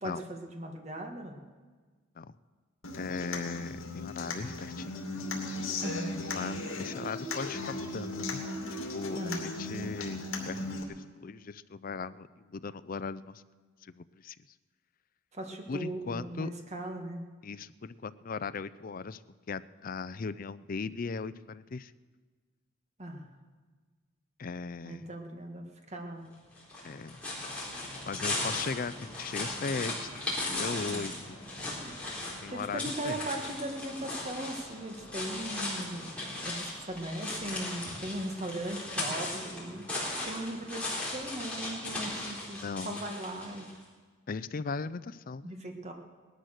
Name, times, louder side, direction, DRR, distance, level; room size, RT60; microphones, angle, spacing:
voice 1, 0.0-1.4 5.8-6.2 9.2-9.6 15.3-17.3 23.0-23.3 24.8-26.3 30.9-31.2 32.5-39.8 40.2-43.7 45.4-45.9, right 1 dB, 35° right, 3 dB, 1.8 m, -39 dB
Human voice / Acoustic guitar, 2.8-10.8, left 2 dB, 70° left, 2.6 m, -37 dB
voice 2, 2.9-5.0 6.3-8.4 8.9-13.4 13.8-14.4 15.7-16.5 17.4-19.2 19.5-21.9 24.4-25.1 26.8-27.2 28.1-31.4 32.4-33.2 42.6-43.0 44.3-45.5, left 4 dB, 40° left, 15 dB, 0.4 m, -38 dB
sound 1, 26.6-43.8, left 2 dB, 5° left, 4.1 m, -37 dB
18.0 x 12.0 x 6.5 m, 1.4 s
head